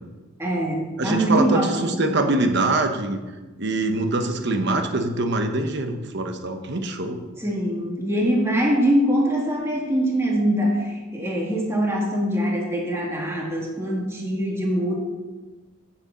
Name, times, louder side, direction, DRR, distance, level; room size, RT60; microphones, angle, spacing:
voice 1, 0.4-1.9 7.4-14.9, equal, 15° right, -2 dB, 1.7 m, -23 dB
voice 2, 1.0-3.2 3.6-7.2, right 2 dB, 60° right, 6 dB, 1.1 m, -24 dB
8.1 x 6.9 x 7.8 m, 1.2 s
head